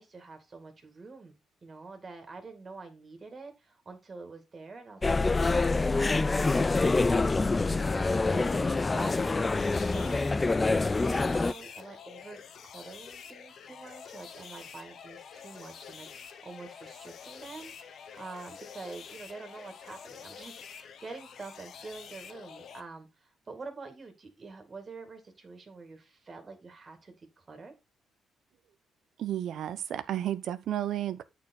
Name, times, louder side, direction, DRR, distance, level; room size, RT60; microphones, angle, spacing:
voice 1, 0.0-1.4 1.6-10.6 11.0-27.7, right 3 dB, 35° right, 2.2 m, -46 dB
sound 1, 5.0-11.5, left 3 dB, 25° left, 0.3 m, -26 dB
Chink clink, 7.8-12.0, left 10 dB, 80° left, 1.8 m, -50 dB
sound 2, 9.2-22.8, left 7 dB, 65° left, 0.9 m, -47 dB
voice 2, 29.2-31.2, right 11 dB, 70° right, 0.8 m, -32 dB
8.3 x 4.6 x 4.3 m
cardioid pair, 90°, 0 cm